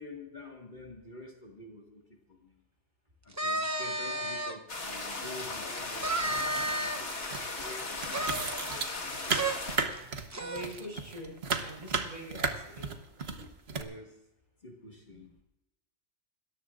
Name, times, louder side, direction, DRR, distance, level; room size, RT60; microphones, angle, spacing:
voice 1, 0.0-2.5 3.2-8.3 13.7-14.2 14.6-15.3, left 2 dB, 40° left, 0 dB, 2.1 m, -48 dB
sound 1, 3.3-4.6 5.1-5.2 6.0-7.2 8.1-9.1 9.3-9.6 9.9-10.0 10.3-10.8, right 1 dB, 15° right, 0.7 m, -33 dB
voice 2, 4.1-4.4 9.7-12.9 13.3-13.5 15.1-15.3, right 1 dB, 40° right, -1 dB, 5.9 m, -45 dB
sound 2, 4.7-9.8, left 3 dB, 75° left, 2.1 m, -37 dB
sound 3, 5.9-7.0 7.3-13.8, right 4 dB, 60° right, 1.4 m, -35 dB
27.5 x 14.0 x 2.5 m, 0.91 s
omnidirectional pair, 1.2 m